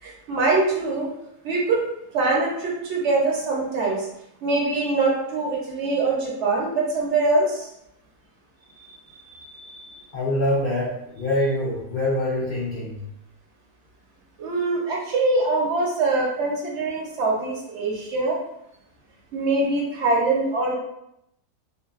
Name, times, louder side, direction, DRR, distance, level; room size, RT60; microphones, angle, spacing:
voice 1, 0.0-1.1 1.4-1.8 2.1-4.1 4.4-7.7 8.8-10.0 14.4-18.4 19.3-20.7, right 3 dB, 65° right, -2 dB, 0.7 m, -23 dB
voice 2, 10.1-13.0, left 1 dB, 65° left, -8 dB, 0.5 m, -25 dB
2.6 x 2.4 x 2.3 m, 0.81 s
omnidirectional pair, 1.7 m